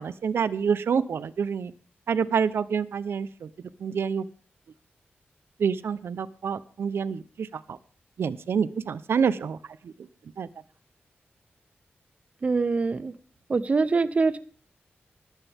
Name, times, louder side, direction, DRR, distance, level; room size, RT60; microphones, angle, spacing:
voice 1, 0.0-1.7 2.1-4.3 5.6-7.8 8.2-9.6 9.8-10.1 10.4-10.5, right 6 dB, 80° right, 16 dB, 0.8 m, -27 dB
voice 2, 12.4-13.1 13.5-14.4, right 4 dB, 35° right, 14 dB, 0.7 m, -24 dB
19.5 x 13.0 x 3.6 m, 0.39 s
wide cardioid pair, 170°, 4 cm